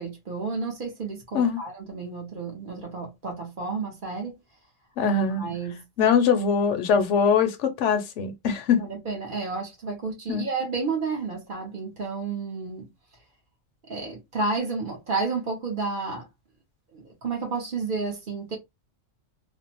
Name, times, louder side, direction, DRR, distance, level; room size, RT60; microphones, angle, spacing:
voice 1, 0.0-4.4 5.4-5.8 8.8-12.9 13.9-16.3 16.9-18.6, right 4 dB, 50° right, 0.8 m, -31 dB
voice 2, 5.0-5.4 6.0-8.8 10.3-10.4, left 6 dB, 75° left, 0.9 m, -22 dB
2.6 x 2.0 x 2.8 m
omnidirectional pair, 1.3 m